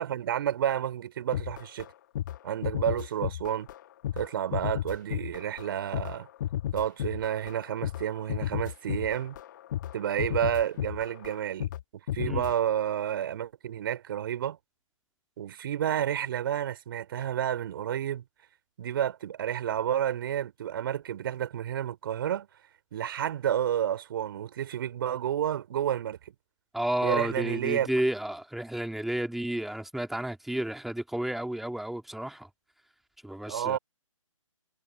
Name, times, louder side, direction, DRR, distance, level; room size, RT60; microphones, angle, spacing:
voice 1, 0.0-1.9 2.4-3.7 4.2-6.3 6.7-9.4 9.9-11.7 12.1-14.6 15.4-18.2 18.8-22.5 22.9-26.2 27.0-27.9 33.5-33.8, right 10 dB, 40° right, 3.7 m, -30 dB
sound 1, 1.3-1.9 2.1-2.4 2.6-11.8 12.1-12.5, left 12 dB, 35° left, 1.2 m, -33 dB
voice 2, 26.7-32.5 33.2-33.8, right 1 dB, ahead, 2.6 m, -31 dB
figure-of-eight pair, 140°, 17 cm